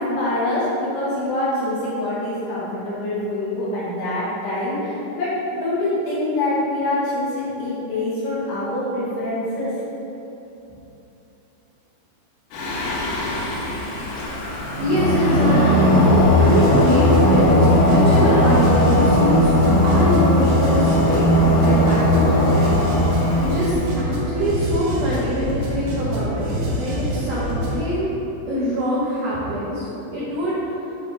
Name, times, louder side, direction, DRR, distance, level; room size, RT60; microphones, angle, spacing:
voice 1, 0.0-9.7, left 1 dB, 60° left, -10 dB, 3.3 m, -25 dB
Singing, 12.5-23.9, left 1 dB, 85° left, 3.7 m, -17 dB
voice 2, 14.8-16.0 16.4-21.3 21.6-23.1 23.4-28.1 28.5-29.9 30.1-30.6, equal, 80° right, -10 dB, 1.8 m, -24 dB
sound 1, 16.4-27.8, equal, 65° right, 3.7 m, -26 dB
10.5 x 4.0 x 3.5 m, 3.0 s
omnidirectional pair, 5.6 m